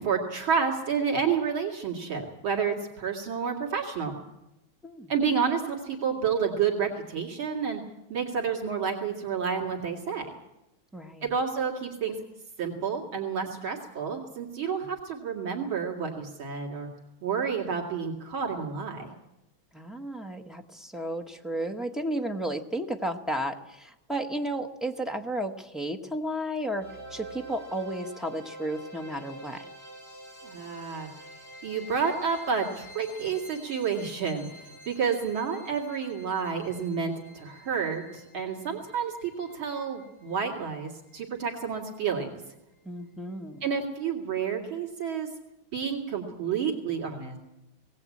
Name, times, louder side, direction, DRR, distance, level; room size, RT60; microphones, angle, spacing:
voice 1, 0.0-4.2 5.1-7.8 8.1-10.3 11.2-12.2 12.6-16.9 17.2-19.1 30.4-31.1 31.6-42.4 43.6-45.3 45.7-47.4, right 6 dB, 80° right, -1 dB, 3.3 m, -30 dB
voice 2, 10.9-11.3 19.7-29.7 42.8-43.7, right 1 dB, ahead, 3 dB, 0.8 m, -33 dB
sound 1, 26.8-41.8, right 1 dB, 55° left, 6.9 m, -48 dB
19.5 x 17.5 x 8.5 m, 0.95 s
omnidirectional pair, 2.2 m